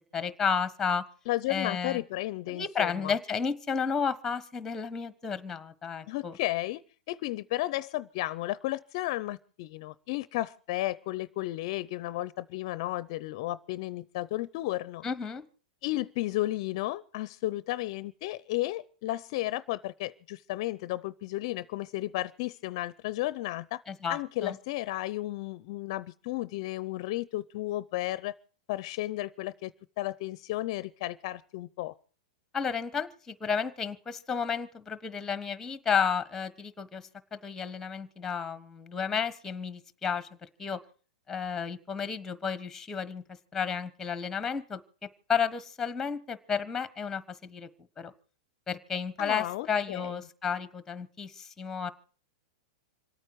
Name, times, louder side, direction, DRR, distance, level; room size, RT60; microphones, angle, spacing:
voice 1, 0.1-1.0 1.5-2.0 2.5-6.4 15.0-15.4 23.9-24.6 32.5-37.0 37.3-40.3 40.6-40.8 41.3-43.2 43.5-44.8 45.3-47.7 48.0-48.1 48.7-51.9, left 6 dB, 10° left, 15 dB, 1.3 m, -32 dB
voice 2, 1.3-3.1 6.1-6.8 7.1-15.0 15.8-23.8 24.1-28.3 28.7-29.7 30.0-31.9 49.2-50.2, left 17 dB, 50° left, 17 dB, 0.6 m, -33 dB
27.0 x 9.0 x 4.7 m, 0.42 s
supercardioid pair, 145°, 4 cm